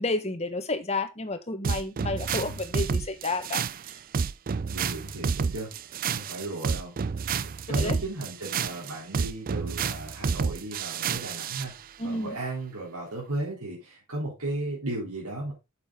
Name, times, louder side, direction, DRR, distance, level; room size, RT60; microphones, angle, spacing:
voice 1, 0.0-3.6 7.7-8.0 12.0-12.4, left 2 dB, 30° left, 1.4 m, -31 dB
sound 1, 1.6-11.7, right 5 dB, 40° right, 0.4 m, -30 dB
voice 2, 4.7-5.7 6.1-6.9 7.4-11.7 12.0-15.5, right 2 dB, 85° right, 3.6 m, -35 dB
8.7 x 7.1 x 3.7 m
head